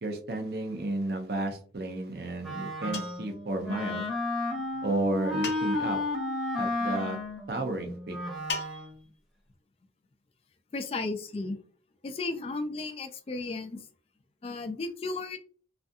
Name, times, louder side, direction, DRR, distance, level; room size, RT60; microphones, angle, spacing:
voice 1, 0.0-4.0 4.8-6.0 6.6-7.2 7.5-8.2, right 2 dB, 65° right, 4 dB, 0.6 m, -32 dB
Wind instrument woodwind instrument, 2.4-9.0, left 2 dB, ahead, 0.7 m, -33 dB
sound 1, 2.9-3.3 5.4-6.0 8.5-9.1, left 4 dB, 75° left, 0.6 m, -37 dB
voice 2, 10.7-11.6 12.0-13.8 14.4-15.4, left 3 dB, 35° left, 7 dB, 0.3 m, -34 dB
2.4 x 2.3 x 2.6 m, 0.42 s
head